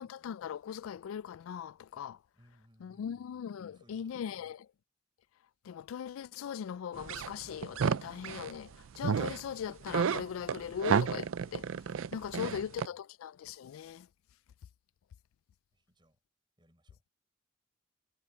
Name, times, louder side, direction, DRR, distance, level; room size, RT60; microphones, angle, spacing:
voice 1, 0.0-2.2 2.8-4.7 5.6-11.7 12.1-14.1, left 8 dB, 85° left, 0.3 m, -40 dB
voice 2, 2.3-4.5 11.9-13.0 15.7-16.2 16.6-17.0, equal, 20° right, 5.1 m, -65 dB
sound 1, 7.0-8.6 9.0-9.4 9.7-12.9, right 6 dB, 75° right, 0.4 m, -31 dB
head